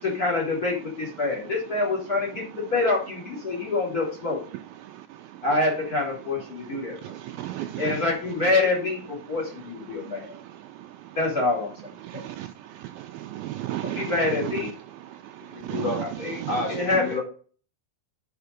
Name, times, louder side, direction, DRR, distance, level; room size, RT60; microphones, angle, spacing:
voice 1, 0.0-4.4 5.4-7.1 7.8-10.4 11.1-12.2 13.8-14.7 16.0-16.4 16.7-17.2, left 3 dB, 25° left, 3.4 m, -26 dB
voice 2, 7.0-8.0 12.1-12.5 13.0-14.1 15.6-16.0 16.4-16.7, right 14 dB, 80° right, 2.2 m, -33 dB
voice 3, 15.5-16.0 16.5-17.2, left 4 dB, 40° left, 5.0 m, -29 dB
7.9 x 5.8 x 6.3 m
omnidirectional pair, 4.6 m